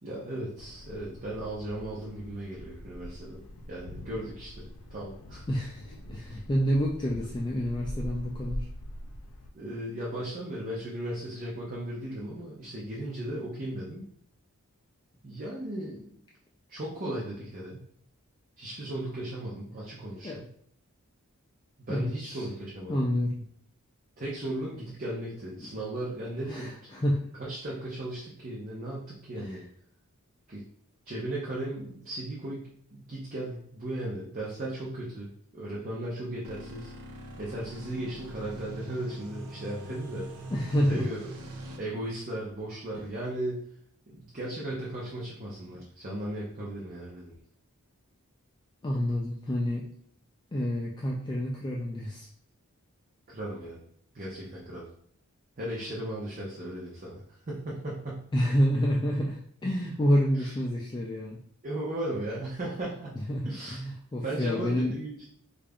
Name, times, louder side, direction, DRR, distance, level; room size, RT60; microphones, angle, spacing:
voice 1, 0.0-3.4 3.7-5.5 9.5-14.0 15.2-16.1 16.7-17.8 18.6-20.5 21.9-23.1 24.2-27.1 27.3-29.6 30.5-30.6 31.1-36.9 37.4-40.5 40.9-41.3 41.8-43.6 44.1-47.3 53.3-53.8 54.1-54.9 55.6-58.3 60.3-60.6 61.6-63.8 64.2-65.2, right 1 dB, 40° right, -5 dB, 0.7 m, -36 dB
Thunder, 0.6-9.5, equal, 75° left, 0.6 m, -43 dB
voice 2, 5.5-8.7 20.2-20.4 21.9-22.5 22.9-23.4 25.6-25.7 26.5-27.2 29.4-29.6 40.5-41.1 48.8-49.9 50.5-52.3 58.3-61.4 63.3-64.9, equal, 20° left, -2 dB, 0.3 m, -28 dB
sound 1, 36.4-41.8, right 1 dB, 90° right, 0.6 m, -42 dB
5.0 x 2.4 x 2.3 m, 0.64 s
head